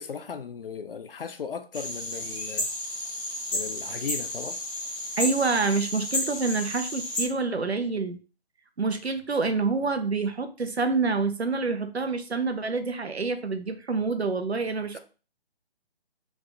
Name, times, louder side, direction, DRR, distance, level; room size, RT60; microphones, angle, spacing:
voice 1, 0.0-2.7 3.5-4.6 14.9-15.0, left 6 dB, 65° left, 0.6 m, -37 dB
sound 1, 1.7-7.3, left 1 dB, 20° left, 1.0 m, -32 dB
voice 2, 5.2-8.2 8.8-15.0, right 4 dB, 90° right, 0.8 m, -27 dB
3.6 x 2.4 x 4.1 m
figure-of-eight pair, 145°, 31 cm